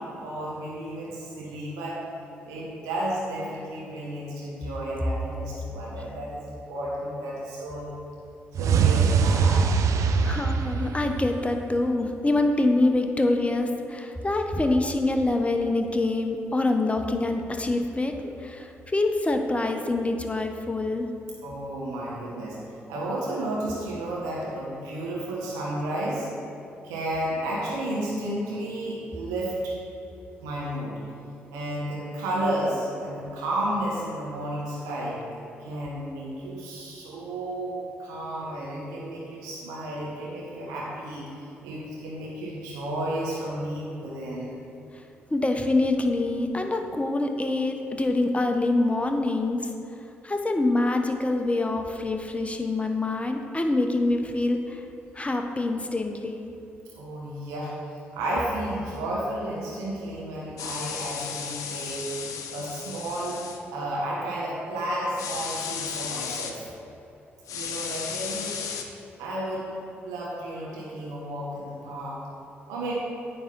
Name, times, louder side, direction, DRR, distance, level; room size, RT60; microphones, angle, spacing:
voice 1, 0.0-2.0 2.4-7.9 8.6-9.7 21.4-26.3 26.8-29.7 30.4-31.0 31.5-35.2 35.6-44.5 56.9-57.7 58.1-62.1 62.5-63.4 63.7-66.7 67.5-68.6 69.2-69.7 70.0-72.2 72.7-72.9, right 1 dB, 75° right, -5 dB, 1.2 m, -32 dB
sound 1, 8.5-11.7, right 6 dB, 60° right, 0.5 m, -22 dB
voice 2, 10.2-18.1 18.4-21.1 45.3-49.7 50.2-54.8 55.1-56.5, left 2 dB, 20° left, 4 dB, 1.0 m, -25 dB
sound 2, 60.6-63.6 65.2-66.5 67.5-68.8, left 7 dB, 65° left, 0.7 m, -34 dB
9.3 x 3.8 x 7.0 m, 2.8 s
hypercardioid pair, 40°, 6 cm